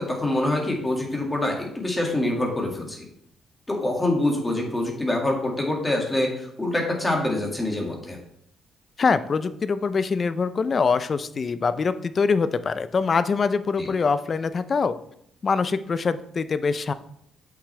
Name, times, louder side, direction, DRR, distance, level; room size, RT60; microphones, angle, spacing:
voice 1, 0.0-3.1 3.7-8.2 13.8-13.9, left 1 dB, 15° left, 0 dB, 2.1 m, -25 dB
voice 2, 9.0-14.9 15.4-16.9, left 5 dB, 40° left, 13 dB, 0.5 m, -24 dB
8.1 x 6.0 x 3.3 m, 0.71 s
cardioid pair, 90°, 0 cm